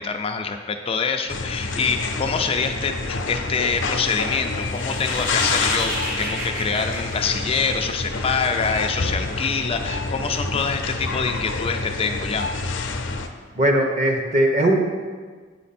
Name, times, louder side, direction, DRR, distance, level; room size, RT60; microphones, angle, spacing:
voice 1, 0.0-12.5, left 5 dB, 30° left, 5 dB, 0.4 m, -25 dB
sound 1, 1.3-13.3, left 3 dB, 85° left, 0.6 m, -28 dB
sound 2, 4.5-8.1, right 1 dB, 55° right, 1.4 m, -32 dB
voice 2, 13.6-14.8, right 1 dB, 35° right, 2 dB, 1.0 m, -19 dB
8.4 x 5.1 x 4.2 m, 1.5 s
head